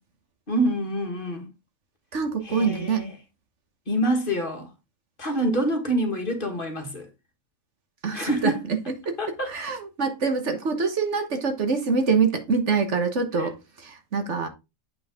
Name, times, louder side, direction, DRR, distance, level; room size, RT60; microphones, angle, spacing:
voice 1, 0.5-1.5 2.4-3.1 3.9-4.7 5.2-7.1 8.1-8.6 9.2-9.5 13.4-13.5, right 1 dB, 40° left, 1.8 m, -26 dB
voice 2, 2.1-3.1 8.0-8.8 9.0-9.2 9.5-14.5, right 5 dB, 60° right, 1.5 m, -25 dB
7.9 x 5.7 x 3.6 m
omnidirectional pair, 1.4 m